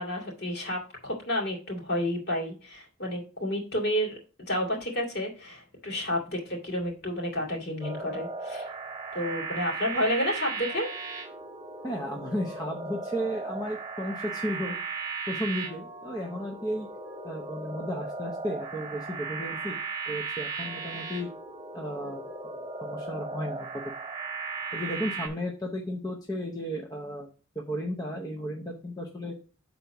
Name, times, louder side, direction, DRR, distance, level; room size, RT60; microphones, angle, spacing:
voice 1, 0.0-4.2 4.5-8.7 9.1-10.9, equal, 50° left, -1 dB, 2.3 m, -30 dB
sound 1, 7.8-25.3, right 4 dB, 20° right, 1.6 m, -37 dB
voice 2, 11.8-14.8 15.3-16.9 17.2-19.8 20.1-21.3 21.7-23.7 24.7-27.3 27.6-29.3, equal, 20° left, 0 dB, 0.7 m, -34 dB
6.2 x 4.0 x 5.7 m, 0.37 s
head